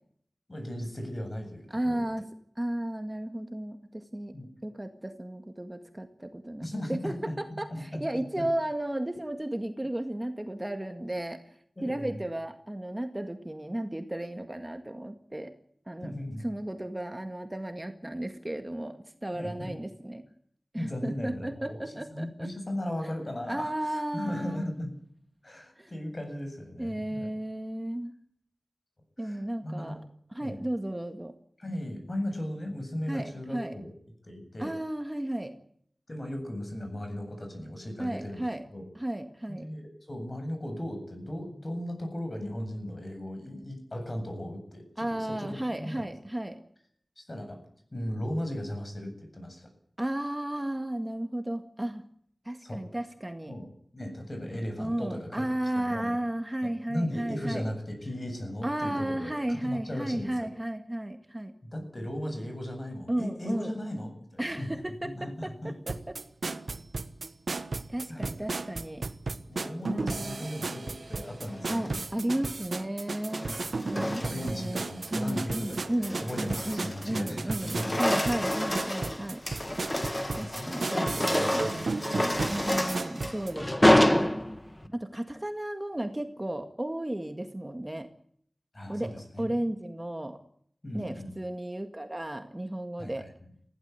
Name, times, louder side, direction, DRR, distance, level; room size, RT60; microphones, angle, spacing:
voice 1, 0.5-2.0 4.3-4.5 6.6-8.4 11.8-12.2 16.0-16.4 19.3-19.7 20.7-21.8 22.1-24.9 25.4-27.3 29.2-30.0 30.4-30.6 31.6-33.9 34.2-34.7 36.1-38.9 39.5-46.0 47.2-47.6 47.9-49.7 52.6-52.8 53.5-53.7 53.9-55.4 55.7-56.1 56.6-60.5 61.6-65.7 68.1-68.3 69.5-72.0 73.4-73.6 74.0-78.0 80.4-82.0 82.3-82.9 84.8-84.9 88.7-89.6 90.8-91.3 93.0-93.3, left 1 dB, 40° left, 5 dB, 8.0 m, -37 dB
voice 2, 1.7-2.3 2.6-4.3 4.6-11.4 11.8-15.5 15.9-16.1 16.4-20.3 20.7-22.5 23.5-24.7 25.8-25.9 26.8-28.1 29.2-30.0 30.3-31.3 33.1-33.7 34.6-35.5 38.0-38.6 39.0-39.7 45.0-46.6 50.0-52.0 52.5-53.5 54.8-57.6 58.6-61.5 63.1-63.7 64.4-66.2 67.9-69.0 69.9-70.4 71.7-73.5 73.8-74.8 75.1-79.4 80.4-81.6 82.5-84.4 84.9-88.1 88.9-90.4 90.9-93.3, right 1 dB, 20° right, 6 dB, 1.9 m, -34 dB
sound 1, 65.9-83.5, right 3 dB, 85° right, 1.2 m, -35 dB
sound 2, 71.5-72.0 73.1-74.6 75.1-75.4 75.8-77.3 77.5-84.9, left 1 dB, 20° left, 1.9 m, -28 dB
20.5 x 16.0 x 9.5 m, 0.65 s
wide cardioid pair, 75°, 0 cm